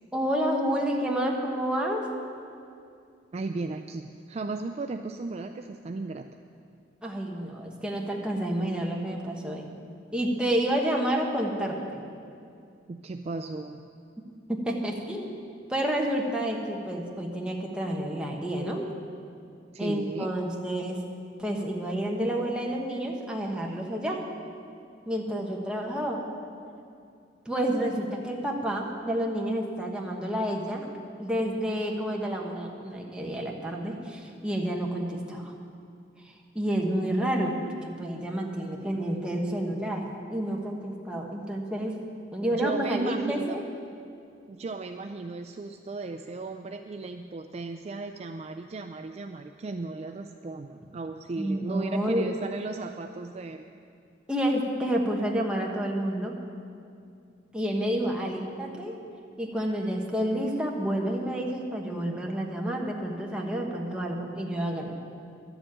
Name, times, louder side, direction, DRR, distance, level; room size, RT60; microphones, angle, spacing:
voice 1, 0.1-2.1 7.0-9.7 10.1-12.0 14.5-15.3 15.7-18.9 19.8-21.0 21.4-24.2 25.1-26.2 27.4-30.8 31.2-35.5 36.2-42.0 42.3-43.6 51.4-52.3 54.3-56.4 57.5-59.0 59.4-65.0, right 1 dB, 5° right, -1 dB, 1.2 m, -29 dB
voice 2, 3.3-6.3 12.9-13.8 19.7-20.3 42.5-43.6 44.5-53.6 58.0-58.1, right 3 dB, 35° right, 6 dB, 0.4 m, -35 dB
12.0 x 7.2 x 8.8 m, 2.4 s
head